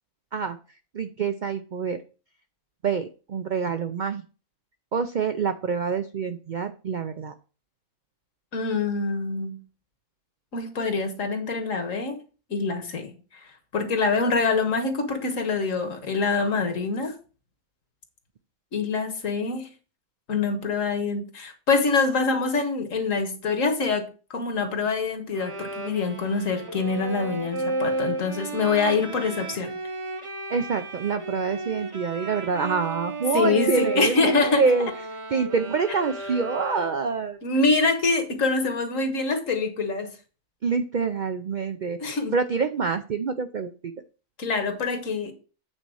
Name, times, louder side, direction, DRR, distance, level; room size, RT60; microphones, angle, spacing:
voice 1, 0.9-2.0 2.8-4.2 4.9-7.3 30.5-34.9 35.3-37.4 40.6-42.0 42.3-43.9, right 5 dB, 85° right, 0.4 m, -26 dB
voice 2, 8.5-9.6 10.5-12.2 12.5-13.1 13.7-17.2 18.7-19.7 20.3-29.7 33.3-34.6 37.4-40.1 42.0-42.3 44.4-45.3, left 4 dB, 60° left, 1.7 m, -25 dB
Bowed string instrument, 25.3-37.2, right 2 dB, 25° right, 0.8 m, -33 dB
8.6 x 4.1 x 6.3 m
omnidirectional pair, 1.5 m